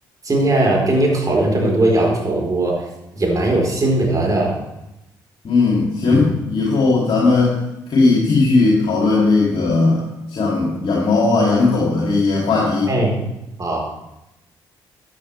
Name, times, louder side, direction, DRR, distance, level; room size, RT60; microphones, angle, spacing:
voice 1, 0.2-2.8 3.1-4.6 6.1-6.2 12.9-13.2 13.6-14.0, right 2 dB, 35° right, -1 dB, 4.1 m, -19 dB
voice 2, 5.4-7.5 7.9-10.0 10.3-12.9, left 3 dB, 55° left, -5 dB, 2.9 m, -17 dB
14.0 x 9.3 x 3.4 m, 0.91 s
hypercardioid pair, 45°, 11 cm